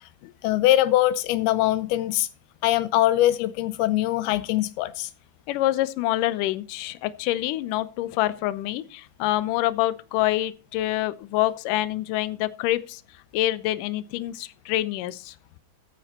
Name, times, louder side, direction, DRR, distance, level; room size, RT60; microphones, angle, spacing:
voice 1, 0.0-2.3 2.6-5.1, left 15 dB, 90° left, 2.6 m, -22 dB
voice 2, 5.5-13.0 13.3-15.4, left 15 dB, 75° left, 2.1 m, -26 dB
14.5 x 7.6 x 4.3 m
omnidirectional pair, 4.4 m